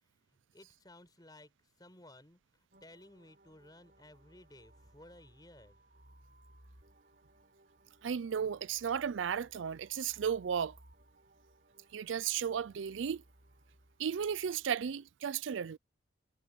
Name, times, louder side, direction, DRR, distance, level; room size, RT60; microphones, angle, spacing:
voice 1, 0.5-5.8, left 1 dB, 20° left, 5.1 m, -57 dB
sound 1, 2.7-14.7, right 1 dB, 50° right, 7.7 m, -63 dB
voice 2, 8.0-10.7 11.9-13.2 14.0-15.8, right 7 dB, 85° right, 0.4 m, -34 dB
head